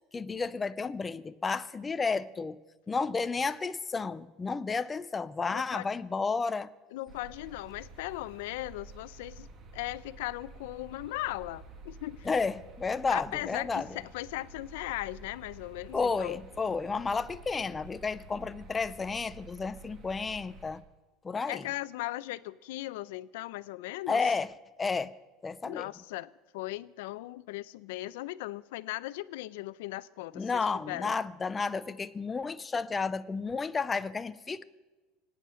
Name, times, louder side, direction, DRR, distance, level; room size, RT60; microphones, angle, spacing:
voice 1, 0.1-2.6 2.9-6.7 12.3-13.9 15.9-20.8 21.2-21.6 24.1-24.5 24.8-25.1 25.4-25.9 30.3-34.6, left 4 dB, 15° left, 0.5 m, -32 dB
voice 2, 5.5-5.9 6.9-9.5 9.7-12.3 13.1-16.4 21.5-24.3 25.6-31.2, left 17 dB, 85° left, 0.6 m, -38 dB
sound 1, 7.1-20.8, right 3 dB, 30° right, 1.4 m, -50 dB
25.0 x 9.2 x 5.7 m
cardioid pair, 170°, 0 cm